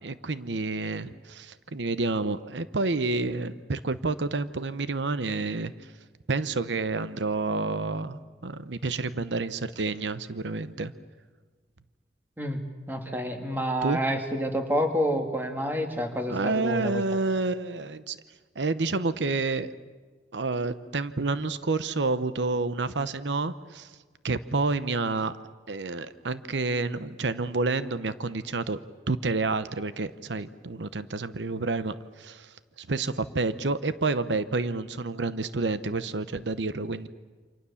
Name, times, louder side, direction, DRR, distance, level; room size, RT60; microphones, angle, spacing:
voice 1, 0.0-5.9 6.3-10.9 13.8-14.0 16.3-18.2 18.6-19.7 20.3-23.9 24.2-25.3 25.7-28.8 29.1-37.1, right 3 dB, 90° right, 13 dB, 0.9 m, -29 dB
voice 2, 12.9-17.0, equal, 10° right, 4 dB, 2.4 m, -28 dB
28.5 x 26.0 x 7.1 m, 1.4 s
head